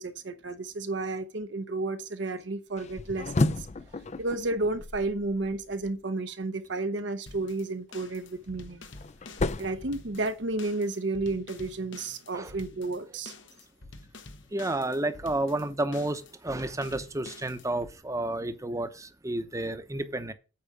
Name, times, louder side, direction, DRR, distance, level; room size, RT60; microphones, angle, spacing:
voice 1, 0.0-3.7 4.2-8.9 9.6-13.3, right 2 dB, 65° right, 0.8 m, -32 dB
sound 1, 2.8-5.9 8.1-10.7, left 2 dB, 35° left, 0.5 m, -33 dB
sound 2, 7.3-17.9, left 3 dB, 75° left, 1.2 m, -49 dB
voice 2, 14.5-20.3, right 2 dB, 15° right, 0.8 m, -31 dB
8.6 x 4.8 x 7.2 m
head